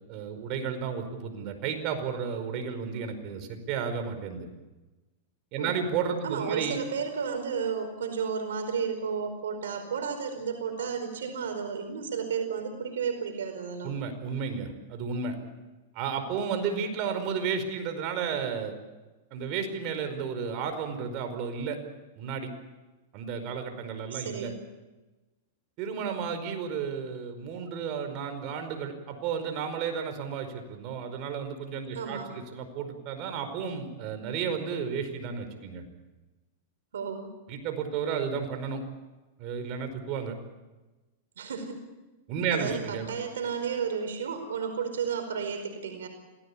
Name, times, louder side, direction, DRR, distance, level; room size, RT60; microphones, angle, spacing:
voice 1, 0.0-4.5 5.5-6.8 13.8-15.4 15.9-18.8 19.3-21.8 22.2-22.5 23.1-24.5 25.8-35.8 37.5-38.8 39.4-40.4 42.3-43.1, right 6 dB, 45° right, 7 dB, 4.9 m, -32 dB
voice 2, 6.2-13.9 24.1-24.6 31.9-32.3 36.9-37.3 41.4-41.8 42.5-46.1, right 6 dB, 90° right, 5 dB, 4.8 m, -32 dB
27.0 x 17.5 x 8.6 m, 1.2 s
hypercardioid pair, 140°, 0 cm